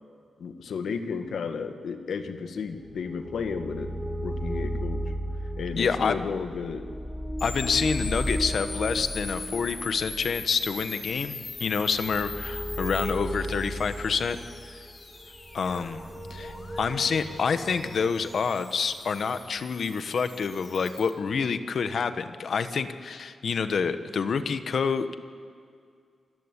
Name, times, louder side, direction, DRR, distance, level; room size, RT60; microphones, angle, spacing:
voice 1, 0.4-3.9 4.2-5.0 5.6-6.9, left 5 dB, 75° left, 8 dB, 1.8 m, -33 dB
sound 1, 2.8-19.5, equal, ahead, 2.2 m, -35 dB
voice 2, 5.8-6.2 7.4-14.4 15.5-16.0 16.3-25.1, left 5 dB, 55° left, 11 dB, 1.2 m, -28 dB
sound 2, 7.4-21.1, left 4 dB, 40° left, 2.8 m, -42 dB
27.5 x 15.5 x 9.9 m, 2.2 s
wide cardioid pair, 160°, 0 cm